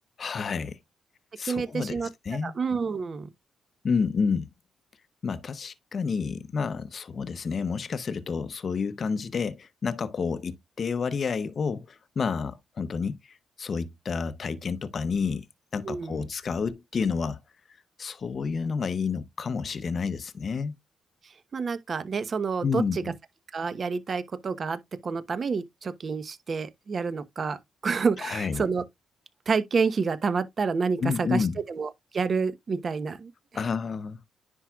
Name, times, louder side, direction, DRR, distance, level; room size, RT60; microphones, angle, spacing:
voice 1, 0.2-0.8 1.4-2.0 2.3-2.5 3.8-4.5 5.2-15.5 15.7-17.4 18.0-20.7 22.6-23.0 28.2-28.6 31.0-31.6 33.5-34.2, left 5 dB, 50° left, 0.7 m, -29 dB
voice 2, 1.4-2.1 2.4-3.3 15.8-16.3 21.2-23.1 23.5-27.6 27.8-28.8 29.5-33.3, right 5 dB, 45° right, 1.0 m, -29 dB
10.0 x 4.6 x 2.4 m
cardioid pair, 75°, 0 cm